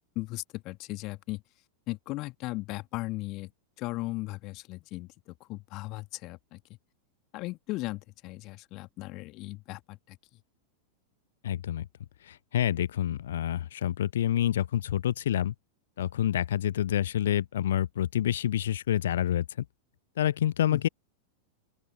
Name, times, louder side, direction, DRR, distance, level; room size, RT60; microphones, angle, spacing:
voice 1, 0.2-1.4 1.9-3.5 3.8-6.6 7.3-10.2 20.7-20.9, left 21 dB, 40° left, 2.0 m, -37 dB
voice 2, 11.4-11.9 12.2-15.5 16.0-19.6 20.2-20.9, left 11 dB, 60° left, 0.8 m, -28 dB
open air
figure-of-eight pair, 90°, 0 cm